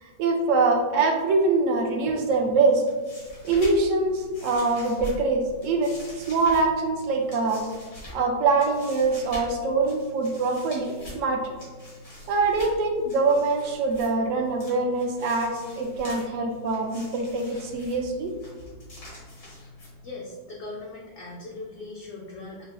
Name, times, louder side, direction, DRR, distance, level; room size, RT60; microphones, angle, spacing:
voice 1, 0.0-2.8 3.4-7.6 8.1-11.5 12.3-18.3, right 3 dB, 80° right, 2 dB, 0.7 m, -24 dB
sound 1, 2.7-20.3, left 1 dB, 90° left, 2.3 m, -44 dB
voice 2, 20.0-22.6, left 2 dB, 70° left, -3 dB, 0.8 m, -39 dB
6.2 x 2.3 x 2.5 m, 1.3 s
omnidirectional pair, 1.9 m